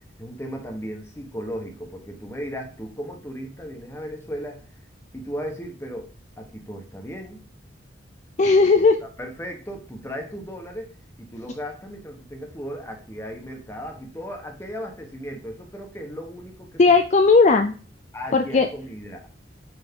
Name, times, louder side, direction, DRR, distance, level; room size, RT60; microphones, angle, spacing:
voice 1, 0.2-4.6 5.1-7.4 8.8-8.9 9.2-10.9 11.2-17.0 18.1-19.3, equal, 15° left, 3 dB, 1.2 m, -36 dB
voice 2, 8.4-9.0 16.8-17.7 18.3-18.7, left 4 dB, 35° left, 6 dB, 0.4 m, -16 dB
5.8 x 5.1 x 3.7 m, 0.38 s
head